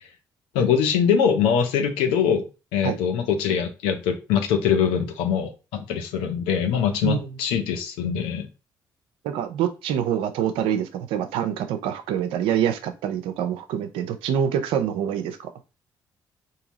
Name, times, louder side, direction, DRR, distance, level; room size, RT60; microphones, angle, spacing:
voice 1, 0.5-2.4 2.7-8.5, left 7 dB, 90° left, 0.6 m, -23 dB
voice 2, 9.2-15.5, right 9 dB, 85° right, 0.5 m, -25 dB
3.8 x 2.7 x 2.9 m
supercardioid pair, 60°, 9 cm